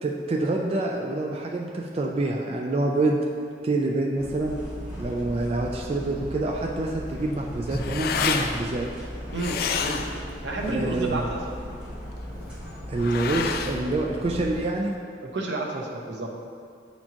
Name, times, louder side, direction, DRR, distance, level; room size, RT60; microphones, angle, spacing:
voice 1, 0.0-3.2 3.6-4.6 5.0-8.9 10.7-11.2 12.9-14.9, right 2 dB, 35° right, 0 dB, 0.4 m, -26 dB
sound 1, 4.1-14.6, equal, 5° right, 1.3 m, -37 dB
sound 2, 7.1-15.0, left 6 dB, 55° left, 0.3 m, -32 dB
voice 2, 9.3-10.0 10.4-11.4 13.3-13.4 15.2-16.3, right 2 dB, 85° right, 0 dB, 0.9 m, -30 dB
9.0 x 4.3 x 2.9 m, 2.2 s
head